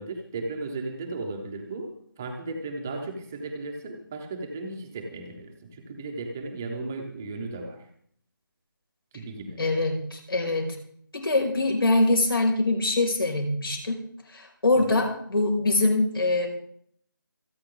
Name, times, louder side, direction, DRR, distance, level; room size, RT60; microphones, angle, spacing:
voice 1, 0.0-7.9 9.1-9.6 14.7-15.0, right 3 dB, 5° right, 2 dB, 0.7 m, -35 dB
voice 2, 9.6-10.8 11.1-14.0 14.3-16.5, left 2 dB, 85° left, 2 dB, 5.6 m, -24 dB
27.0 x 9.3 x 3.8 m, 0.63 s
figure-of-eight pair, 180°, 12 cm